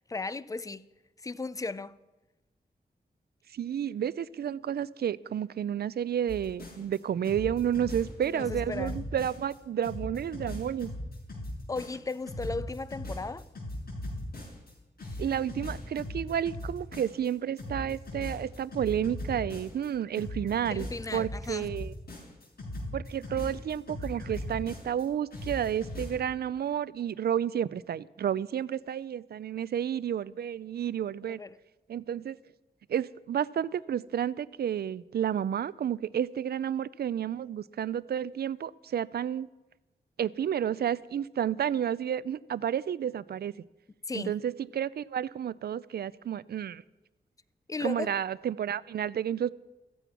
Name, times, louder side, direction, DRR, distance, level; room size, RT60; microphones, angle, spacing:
voice 1, 0.1-0.8 1.2-2.0 8.3-9.0 11.7-13.4 20.7-21.7 31.4-31.6 44.1-44.3 47.7-48.1, left 3 dB, 20° left, 0.4 m, -35 dB
voice 2, 3.5-10.9 15.2-21.9 22.9-31.4 31.9-32.4 32.9-39.5 40.2-43.5 44.1-46.8 47.8-49.5, right 9 dB, 75° right, 0.5 m, -31 dB
sound 1, 6.3-7.0 7.2-9.5 9.8-14.7 15.0-17.3 17.6-19.9 20.1-25.0 25.3-26.2, left 1 dB, 70° left, 7.2 m, -39 dB
15.0 x 15.0 x 6.0 m
wide cardioid pair, 160°, 16 cm